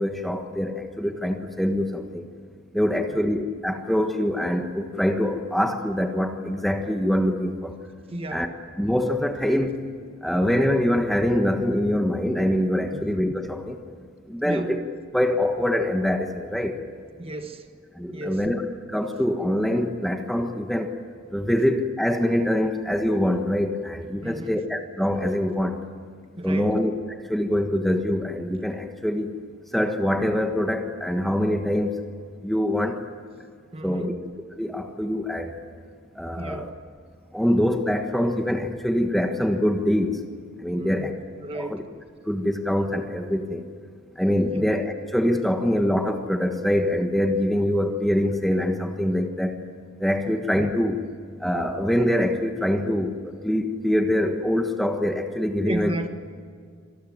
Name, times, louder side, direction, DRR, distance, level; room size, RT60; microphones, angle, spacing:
voice 1, 0.0-2.2 2.7-7.8 8.3-8.5 8.8-9.7 10.2-13.8 14.3-14.8 15.1-16.8 17.9-18.6 18.9-20.9 21.3-25.8 26.4-26.9 27.2-29.3 29.7-32.0 32.4-33.0 33.8-34.1 34.6-35.6 36.1-36.7 37.3-40.2 40.6-41.1 41.5-41.8 42.3-43.7 44.1-49.6 50.0-51.0 51.4-56.0, left 1 dB, ahead, 4 dB, 1.4 m, -24 dB
voice 2, 8.1-8.5 12.9-13.1 14.4-14.7 17.2-17.7 18.1-18.5 24.2-24.6 26.4-26.8 33.7-34.2 36.4-36.8 40.8-41.1 41.4-41.9 44.5-44.7 55.6-56.1, right 1 dB, 25° right, 6 dB, 1.5 m, -33 dB
26.0 x 19.5 x 9.4 m, 2.1 s
head